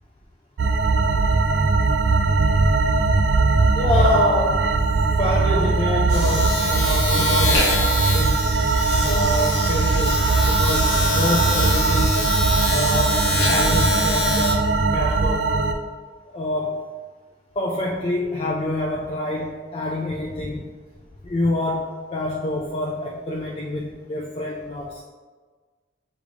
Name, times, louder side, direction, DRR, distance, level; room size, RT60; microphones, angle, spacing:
sound 1, 0.6-15.7, right 3 dB, 85° right, 0.4 m, -20 dB
Domestic sounds home sounds, 2.8-3.0 3.3-14.5, left 2 dB, 75° left, 0.9 m, -26 dB
voice 1, 3.7-4.6 5.2-7.7 8.1-8.4 9.0-15.5 16.3-16.8 17.6-20.7 21.2-25.0, left 1 dB, 30° left, -2 dB, 0.4 m, -26 dB
6.3 x 2.5 x 3.4 m, 1.5 s
head